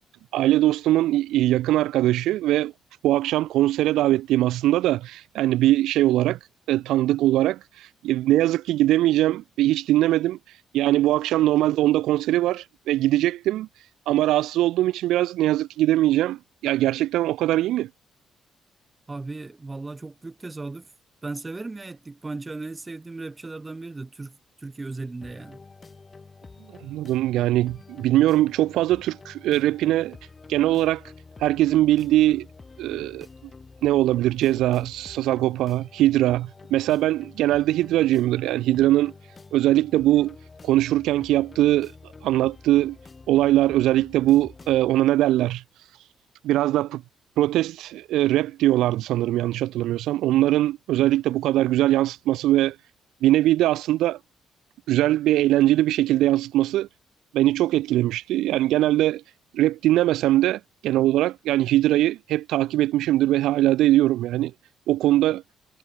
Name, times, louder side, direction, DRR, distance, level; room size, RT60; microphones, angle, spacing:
voice 1, 0.3-2.7 3.0-6.4 6.7-10.4 10.7-13.7 14.1-17.9 26.8-30.2 30.5-31.0 31.4-32.5 32.8-33.3 33.8-39.1 39.5-40.4 40.6-41.9 42.2-43.0 43.3-45.6 46.4-47.0 47.4-52.8 53.2-54.2 54.9-56.9 57.3-59.2 59.5-64.5 64.9-65.4, right 14 dB, 90° right, 0.3 m, -21 dB
voice 2, 19.1-20.9 21.2-25.6, right 3 dB, 20° right, 1.1 m, -36 dB
sound 1, 25.2-44.9, left 4 dB, 30° left, 1.4 m, -47 dB
cardioid pair, 90°, 0 cm